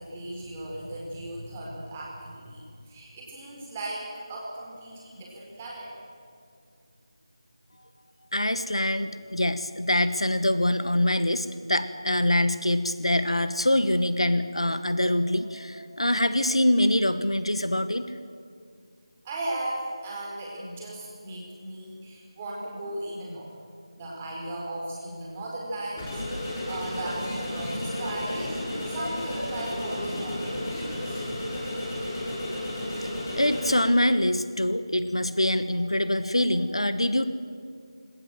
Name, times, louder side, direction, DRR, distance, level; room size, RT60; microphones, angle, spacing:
voice 1, 0.0-5.9 19.2-23.5 24.0-28.6 28.9-31.2, right 1 dB, 20° right, -3 dB, 4.6 m, -37 dB
voice 2, 8.3-18.0 33.3-37.3, left 1 dB, 85° left, 12 dB, 1.3 m, -24 dB
sound 1, 26.0-33.8, left 1 dB, 25° left, 6.3 m, -32 dB
19.5 x 18.5 x 7.8 m, 2.3 s
figure-of-eight pair, 165°, 3 cm